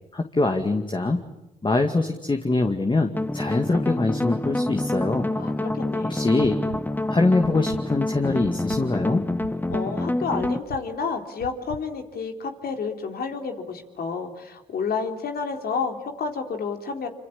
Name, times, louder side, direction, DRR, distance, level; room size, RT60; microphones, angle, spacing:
voice 1, 0.1-1.2 1.6-5.3 6.1-6.6 7.1-9.2, left 3 dB, 30° left, 5 dB, 2.3 m, -23 dB
sound 1, 3.1-10.6, left 1 dB, 10° left, 1.1 m, -27 dB
voice 2, 5.3-6.3 9.7-17.1, left 5 dB, 65° left, 4 dB, 3.7 m, -30 dB
sound 2, 6.4-6.8 7.4-7.8 8.4-8.8 9.4-9.8 10.4-10.8 11.4-11.8, right 12 dB, 90° right, 1.2 m, -39 dB
26.5 x 25.5 x 8.7 m, 0.99 s
supercardioid pair, 50°, 17 cm